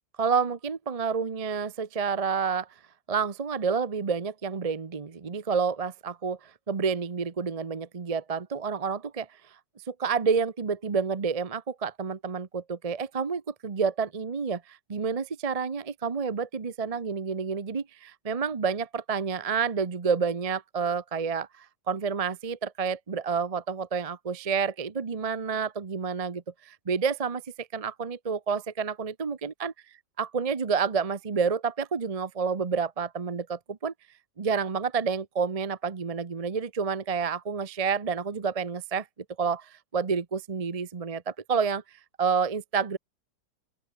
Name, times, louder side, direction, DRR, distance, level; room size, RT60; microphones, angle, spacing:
voice 1, 0.2-2.7 3.1-9.3 9.9-29.7 30.2-33.9 34.4-39.1 39.4-41.8 42.2-43.0, right 5 dB, 35° right, 0.6 m, -29 dB
open air
omnidirectional pair, 1.9 m